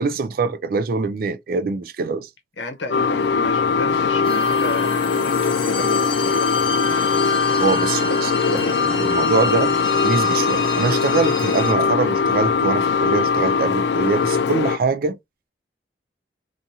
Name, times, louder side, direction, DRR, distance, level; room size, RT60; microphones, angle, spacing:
voice 1, 0.0-2.3 7.6-9.8 10.0-15.2, right 4 dB, 50° right, 0.3 m, -23 dB
voice 2, 2.6-6.5, left 2 dB, 85° left, 0.8 m, -33 dB
sound 1, 2.9-14.8, left 5 dB, 65° left, 0.3 m, -20 dB
sound 2, 4.2-11.7, left 1 dB, 30° left, 0.7 m, -30 dB
2.6 x 2.5 x 2.7 m
head